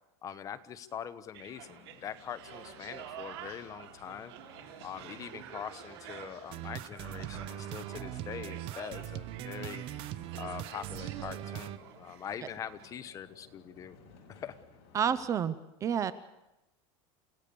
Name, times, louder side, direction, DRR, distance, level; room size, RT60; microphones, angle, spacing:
voice 1, 0.2-4.3 4.8-9.9 10.3-14.0 14.3-14.5, left 8 dB, 25° left, 12 dB, 1.1 m, -43 dB
sound 1, 1.3-15.4, left 4 dB, 50° left, 6.3 m, -58 dB
sound 2, 1.3-12.5 12.8-13.0, right 10 dB, 75° right, 3.8 m, -49 dB
sound 3, 6.5-11.8, right 13 dB, 40° right, 1.0 m, -40 dB
voice 2, 14.9-16.1, right 8 dB, 20° right, 15 dB, 0.7 m, -30 dB
29.5 x 16.5 x 6.9 m, 0.94 s
supercardioid pair, 160°, 14 cm